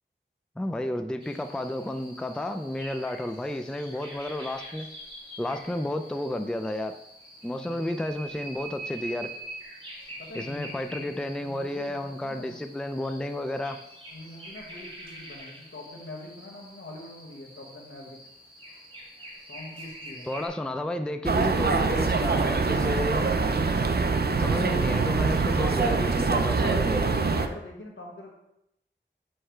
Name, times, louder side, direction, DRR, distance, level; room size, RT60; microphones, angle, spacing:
voice 1, 0.6-4.9 5.4-7.0 7.4-9.3 10.3-13.8 20.3-23.3 24.4-27.1, left 1 dB, 5° left, 7 dB, 0.4 m, -31 dB
sound 1, 1.2-20.5, right 1 dB, 25° right, 2.3 m, -45 dB
voice 2, 7.4-7.8 10.2-12.6 14.1-18.2 19.5-20.3 26.6-28.3, left 2 dB, 75° left, -1 dB, 1.3 m, -44 dB
sound 2, 21.2-27.5, right 4 dB, 55° right, 0.5 m, -24 dB
6.6 x 3.3 x 4.4 m, 0.80 s
wide cardioid pair, 60°, 20 cm